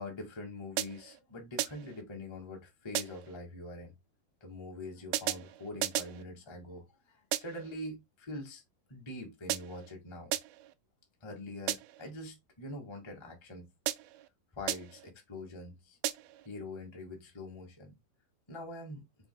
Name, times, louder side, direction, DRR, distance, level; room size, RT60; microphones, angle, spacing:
voice 1, 0.0-3.9 4.4-8.6 8.9-10.3 11.2-13.7 14.5-16.0 16.4-17.9 18.5-19.0, left 1 dB, 15° left, 1.0 m, -44 dB
sound 1, 0.8-1.2 1.6-2.0 2.9-3.4 5.1-6.2 7.3-7.7 9.5-9.9 10.3-10.7 11.7-12.1 13.9-14.3 14.7-15.1 16.0-16.5, right 15 dB, 80° right, 2.3 m, -35 dB
7.9 x 5.7 x 2.3 m
omnidirectional pair, 4.5 m